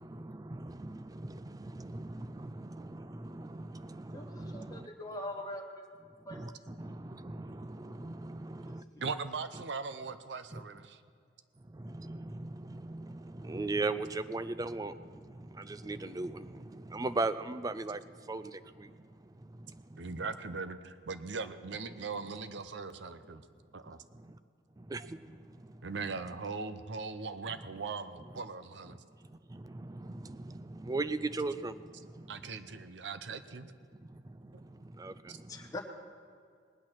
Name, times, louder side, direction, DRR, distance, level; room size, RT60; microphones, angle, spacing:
voice 1, 0.0-4.9 6.3-8.8 10.5-10.6 11.7-20.1 21.9-22.0 24.1-24.4 24.8-25.9 29.3-32.3 34.0-35.7, right 2 dB, 20° right, 13 dB, 0.4 m, -39 dB
voice 2, 4.1-5.6 6.3-6.4 8.7-8.8 35.5-35.8, left 1 dB, 20° left, 0 dB, 1.0 m, -42 dB
voice 3, 9.0-11.0 20.0-23.4 23.7-24.0 25.8-29.0 32.3-33.7 35.3-35.4, right 4 dB, 70° right, 12 dB, 0.7 m, -40 dB
19.0 x 8.9 x 6.0 m, 2.2 s
head